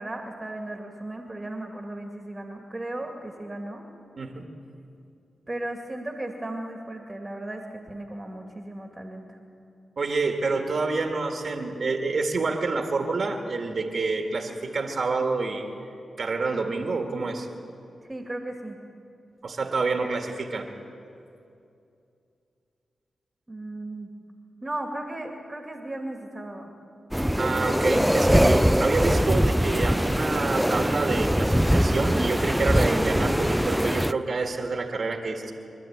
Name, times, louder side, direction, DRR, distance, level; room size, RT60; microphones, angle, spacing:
voice 1, 0.0-3.8 5.5-9.4 18.1-18.8 23.5-24.1 24.6-26.7, right 1 dB, 25° right, 2 dB, 2.3 m, -36 dB
voice 2, 10.0-15.6 16.2-17.5 19.4-20.7 27.4-35.5, right 3 dB, 60° right, 4 dB, 1.9 m, -28 dB
sound 1, 27.1-34.1, equal, 5° right, 0.5 m, -22 dB
25.5 x 12.0 x 8.8 m, 2.6 s
cardioid pair, 60°, 0 cm